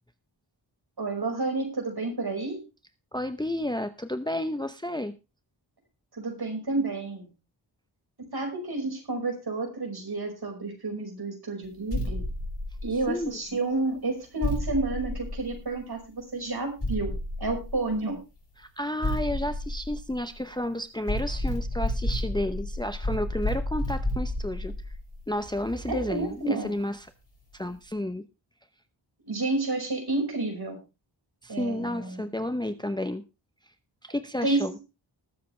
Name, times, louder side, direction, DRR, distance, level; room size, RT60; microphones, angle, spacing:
voice 1, 1.0-2.6 6.1-7.3 8.3-12.3 12.8-17.1 17.4-18.2 25.9-26.7 29.3-30.8 31.5-32.3 34.4-34.7, right 2 dB, 55° right, 3 dB, 5.2 m, -30 dB
voice 2, 3.1-5.1 13.1-13.4 18.6-24.7 25.3-27.1 27.5-28.2 31.4-33.2 34.0-34.7, left 1 dB, 10° left, 10 dB, 0.8 m, -31 dB
sound 1, 11.9-13.4 14.4-16.0 16.8-18.2 19.0-20.6 21.1-26.3, left 1 dB, 30° left, 5.3 m, -32 dB
20.0 x 7.6 x 3.3 m, 0.28 s
wide cardioid pair, 95°, 45 cm